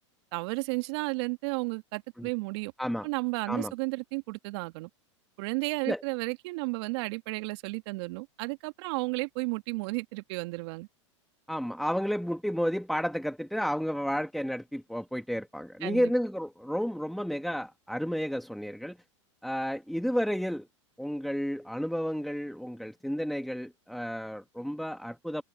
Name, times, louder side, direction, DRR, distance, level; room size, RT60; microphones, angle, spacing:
voice 1, 0.3-2.7 3.0-4.9 5.4-10.9 15.8-16.1, right 26 dB, 60° right, 1.7 m, -33 dB
voice 2, 11.5-19.0 19.4-20.7 21.0-25.4, equal, ahead, 1.8 m, -31 dB
hypercardioid pair, 110°, 16 cm